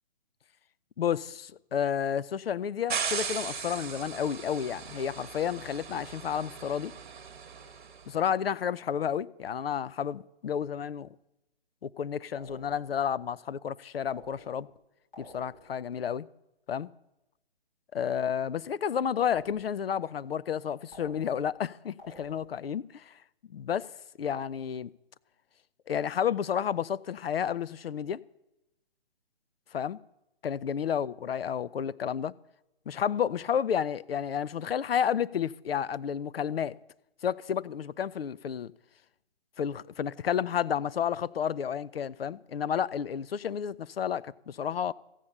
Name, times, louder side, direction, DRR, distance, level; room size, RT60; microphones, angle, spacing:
voice 1, 1.0-6.9 8.1-11.1 11.8-14.7 15.2-16.3 16.7-16.9 17.9-23.1 23.5-23.9 24.2-24.9 25.9-28.2 29.7-30.0 30.4-32.3 32.9-36.8 37.2-38.7 39.6-44.9, left 8 dB, 70° left, 0.5 m, -31 dB
sound 1, 2.9-8.0, right 6 dB, 50° right, 1.5 m, -37 dB
sound 2, 12.4-13.1 14.1-14.8 15.1-15.9 19.2-19.9 20.9-21.6 22.0-22.7, left 1 dB, 45° left, 5.7 m, -52 dB
14.5 x 8.7 x 6.6 m
figure-of-eight pair, 140°, 31 cm